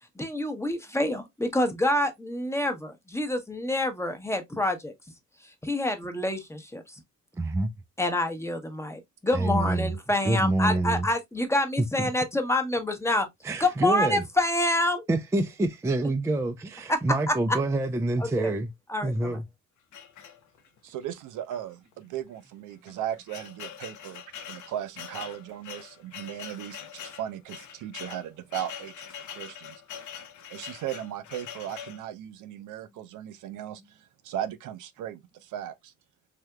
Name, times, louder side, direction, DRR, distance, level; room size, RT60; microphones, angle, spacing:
voice 1, 0.2-4.9 5.6-6.8 8.0-13.3 13.6-15.0 17.3-17.4 18.2-18.5 18.9-19.4, left 1 dB, 10° left, 0.8 m, -27 dB
voice 2, 7.3-7.7 9.3-9.9 10.2-11.1 11.8-12.1 13.4-14.2 15.1-18.7 19.0-19.4, right 2 dB, 10° right, 0.4 m, -27 dB
sound 1, 19.9-20.8 21.5-21.6 21.9-22.0 22.7-32.1, left 8 dB, 75° left, 0.7 m, -43 dB
voice 3, 20.8-29.8 30.5-35.9, right 11 dB, 85° right, 0.5 m, -37 dB
3.4 x 2.8 x 2.2 m
cardioid pair, 90°, 30 cm